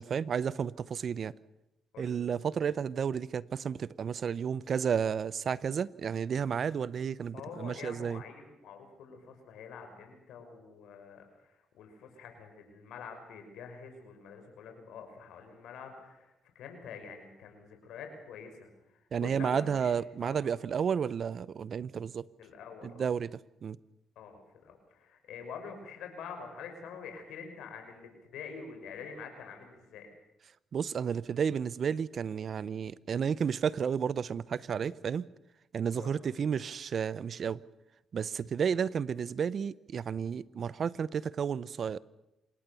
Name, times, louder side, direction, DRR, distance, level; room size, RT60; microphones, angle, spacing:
voice 1, 0.0-1.3 2.0-8.2 19.1-22.2 22.8-23.8 30.7-35.3 35.7-37.6 38.1-42.0, right 7 dB, 55° right, 0.7 m, -32 dB
voice 2, 7.3-19.9 20.2-20.4 22.4-23.1 24.2-30.1 35.9-36.1, left 6 dB, 80° left, 5.9 m, -46 dB
26.5 x 19.0 x 7.1 m
supercardioid pair, 70°, 0 cm